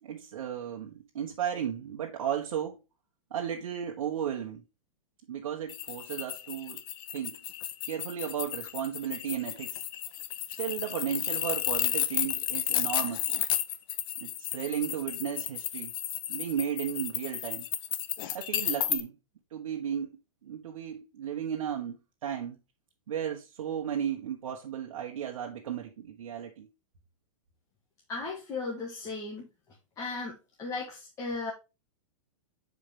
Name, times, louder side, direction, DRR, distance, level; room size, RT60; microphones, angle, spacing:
voice 1, 0.0-2.8 3.3-4.6 5.3-6.8 7.1-7.4 7.9-9.8 10.6-13.3 14.2-15.9 16.3-17.7 18.3-19.1 19.5-20.1 20.4-22.6 23.1-26.7, right 9 dB, 75° right, 1.4 m, -34 dB
sound 1, 5.7-19.0, left 12 dB, 40° left, 0.7 m, -33 dB
voice 2, 28.1-29.5 30.0-31.5, left 3 dB, 20° left, 1.6 m, -36 dB
8.0 x 4.9 x 3.4 m
hypercardioid pair, 155°, 17 cm